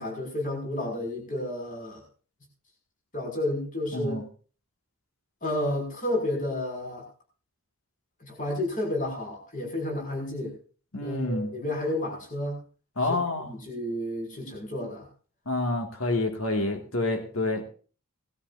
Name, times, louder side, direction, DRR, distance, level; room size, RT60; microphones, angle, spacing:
voice 1, 0.0-2.0 3.1-4.2 5.4-7.0 8.2-10.6 11.0-12.6 13.1-13.2 13.5-15.1, left 1 dB, 40° left, 0 dB, 5.9 m, -31 dB
voice 2, 3.9-4.2 10.9-11.5 13.0-13.6 15.5-17.6, left 2 dB, 65° left, 4 dB, 2.1 m, -28 dB
20.0 x 13.0 x 2.6 m, 0.39 s
head